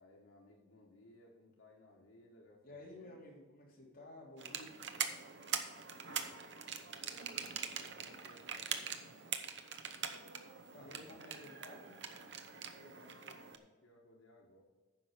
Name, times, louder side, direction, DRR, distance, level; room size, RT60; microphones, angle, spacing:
voice 1, 0.0-3.2 6.5-9.2 10.8-11.3 12.7-14.6, left 1 dB, 85° left, -1 dB, 1.6 m, -63 dB
voice 2, 2.6-4.7 10.7-12.0, left 1 dB, 45° left, -4 dB, 3.3 m, -53 dB
sound 1, 4.4-13.6, right 7 dB, 60° right, 0.9 m, -43 dB
9.8 x 6.0 x 6.8 m, 1.3 s
head